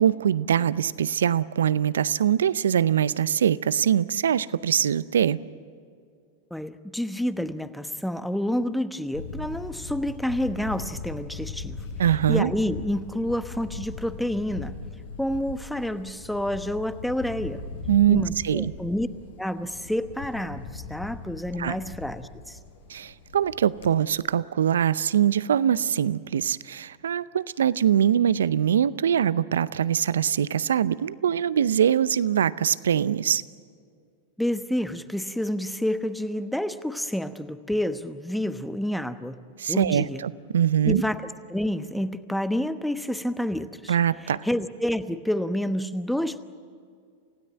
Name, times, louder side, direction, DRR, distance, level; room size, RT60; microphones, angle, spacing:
voice 1, 0.0-5.4 12.0-12.5 17.9-18.7 21.6-21.8 22.9-33.4 39.6-41.0 43.9-44.4, right 9 dB, 80° right, 18 dB, 0.6 m, -23 dB
voice 2, 6.5-11.8 12.3-14.7 15.2-17.6 18.1-19.1 19.4-22.6 34.4-39.4 39.7-40.2 40.8-41.2 41.5-43.9 44.2-46.4, left 1 dB, ahead, 11 dB, 1.0 m, -29 dB
Camera, 9.1-23.9, left 4 dB, 75° left, 5.1 m, -39 dB
28.5 x 16.5 x 9.2 m, 2.2 s
hypercardioid pair, 100°, 0 cm